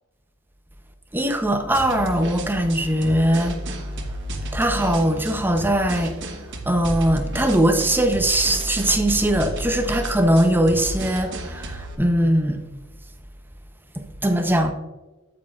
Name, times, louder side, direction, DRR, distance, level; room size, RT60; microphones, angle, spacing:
voice 1, 1.1-3.6 4.5-6.1 6.7-11.3 12.0-12.6 14.2-14.7, right 1 dB, 10° right, 0.7 m, -20 dB
sound 1, 1.7-12.0, right 1 dB, 55° right, 1.2 m, -32 dB
8.9 x 8.6 x 2.4 m
head